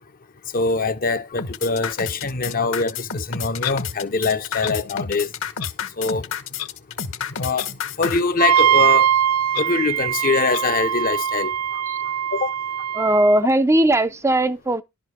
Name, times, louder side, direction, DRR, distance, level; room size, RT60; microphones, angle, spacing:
voice 1, 0.5-5.3 6.0-6.3 7.4-7.7 8.0-9.1 9.6-11.5 12.3-12.5, left 4 dB, 40° left, 0.7 m, -23 dB
sound 1, 1.4-8.2, left 6 dB, 60° left, 1.2 m, -29 dB
Clock, 3.6-3.8 4.6-4.7 5.6-5.7 6.6-6.7 7.6-7.7 8.6-8.7 9.5-9.6 10.5-10.6, left 12 dB, 80° left, 0.8 m, -30 dB
Wind instrument woodwind instrument, 8.4-13.4, right 10 dB, 90° right, 1.2 m, -21 dB
voice 2, 12.9-14.8, right 1 dB, 10° right, 0.5 m, -19 dB
11.5 x 5.1 x 6.5 m
head